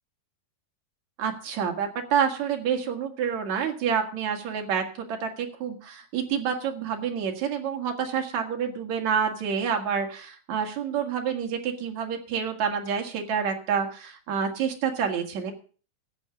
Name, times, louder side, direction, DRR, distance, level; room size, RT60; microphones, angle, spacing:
voice 1, 1.2-15.5, right 7 dB, 55° right, 3 dB, 3.1 m, -28 dB
14.0 x 8.4 x 5.9 m, 0.39 s
omnidirectional pair, 4.1 m